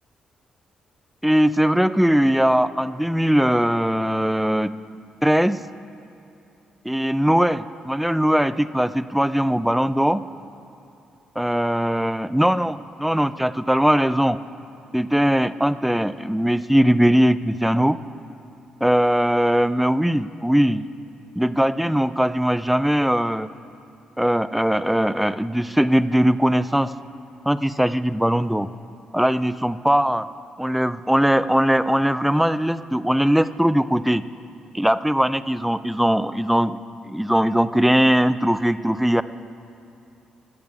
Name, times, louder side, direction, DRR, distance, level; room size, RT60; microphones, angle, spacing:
voice 1, 1.2-4.7 5.2-5.6 6.9-10.2 11.4-14.4 14.9-18.0 18.8-20.9 21.4-23.5 24.2-26.9 27.5-28.7 29.1-30.2 30.6-34.2 34.7-36.8 37.1-39.2, equal, 5° right, 14 dB, 0.4 m, -20 dB
13.5 x 6.8 x 8.2 m, 2.8 s
cardioid pair, 80°, 3 cm